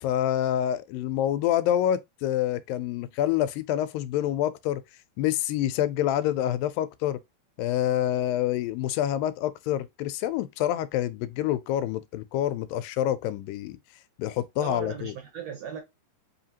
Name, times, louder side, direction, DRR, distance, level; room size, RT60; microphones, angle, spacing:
voice 1, 0.0-4.8 5.2-7.2 7.6-13.8 14.2-15.1, left 12 dB, 85° left, 2.3 m, -27 dB
voice 2, 14.6-15.8, right 8 dB, 70° right, 1.6 m, -37 dB
5.4 x 2.8 x 2.8 m
omnidirectional pair, 4.0 m